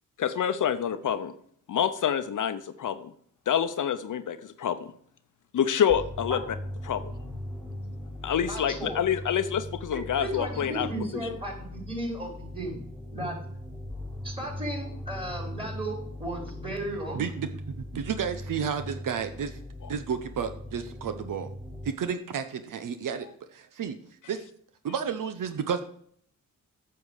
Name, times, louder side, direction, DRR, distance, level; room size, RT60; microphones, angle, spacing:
voice 1, 0.2-1.3 1.7-3.1 3.5-4.9 5.5-6.4 6.8-7.1 8.2-10.9, left 8 dB, 70° left, 10 dB, 0.8 m, -27 dB
sound 1, 5.9-21.9, left 1 dB, ahead, 2.1 m, -39 dB
voice 2, 8.5-9.0 9.9-12.8 13.1-13.4 14.2-17.2, right 1 dB, 15° right, 0 dB, 4.7 m, -35 dB
voice 3, 17.1-19.6 19.9-21.5 21.8-24.0 24.3-24.4 24.8-25.8, right 7 dB, 75° right, 10 dB, 0.8 m, -32 dB
8.7 x 6.9 x 6.5 m, 0.63 s
cardioid pair, 70°, 32 cm